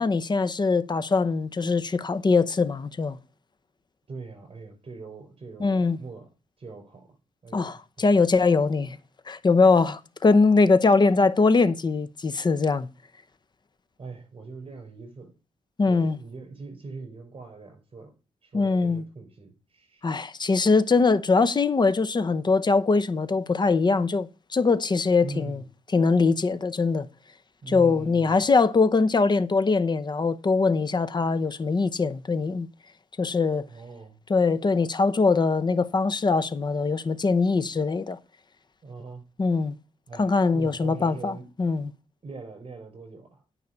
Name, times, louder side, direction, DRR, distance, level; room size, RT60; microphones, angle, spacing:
voice 1, 0.0-3.2 5.6-6.0 7.5-9.0 9.3-12.9 15.8-16.2 18.5-19.0 20.0-25.6 25.9-27.1 27.7-32.7 33.2-33.7 34.3-38.2 39.4-39.8 40.2-41.9, left 4 dB, 35° left, 0.8 m, -22 dB
voice 2, 4.1-6.3 6.6-7.1 7.4-8.2 14.0-15.3 15.9-18.1 18.4-20.0 25.2-25.7 27.6-28.4 33.7-34.2 38.8-39.3 40.1-41.5 42.2-43.4, right 4 dB, 45° right, 5.7 m, -42 dB
9.5 x 5.8 x 7.1 m
cardioid pair, 100°, 14 cm